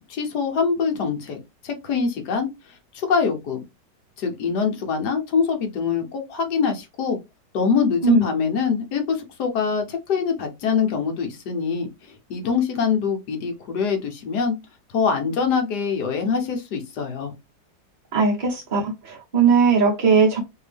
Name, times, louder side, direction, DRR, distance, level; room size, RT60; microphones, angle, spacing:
voice 1, 0.0-2.5 2.9-3.6 4.2-7.2 7.5-14.5 14.9-17.3, left 5 dB, 70° left, 4 dB, 1.3 m, -24 dB
voice 2, 18.1-20.4, right 5 dB, 35° right, -3 dB, 0.9 m, -19 dB
3.1 x 2.7 x 3.3 m, 0.22 s
omnidirectional pair, 1.9 m